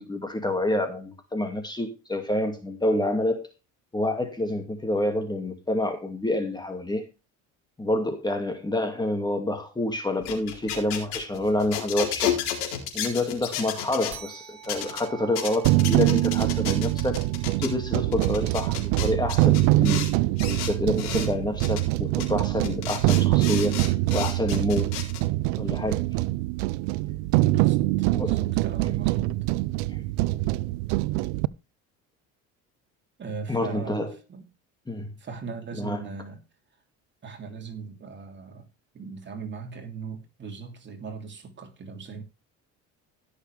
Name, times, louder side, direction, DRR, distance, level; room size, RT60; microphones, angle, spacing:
voice 1, 0.0-3.5 3.9-7.0 7.8-12.3 12.9-17.2 17.6-20.0 20.5-23.8 24.1-24.9 25.6-26.0 28.1-28.4 29.9-30.0 33.5-34.1 34.9-35.1 35.8-36.0, left 1 dB, 15° left, 2.3 m, -28 dB
sound 1, 10.1-14.1 14.6-15.0 15.3-17.7 18.1-20.1 20.4-21.3 21.6-21.8 22.2-22.3 22.6-25.2, left 9 dB, 90° left, 4.2 m, -32 dB
sound 2, 14.1-19.0, right 12 dB, 55° right, 3.4 m, -47 dB
sound 3, 15.6-31.5, right 18 dB, 90° right, 0.5 m, -24 dB
voice 2, 27.4-29.4 33.2-34.5 35.2-36.4 37.2-38.7 38.9-42.2, right 5 dB, 35° right, 3.0 m, -38 dB
16.5 x 6.7 x 3.4 m
cardioid pair, 110°, 33 cm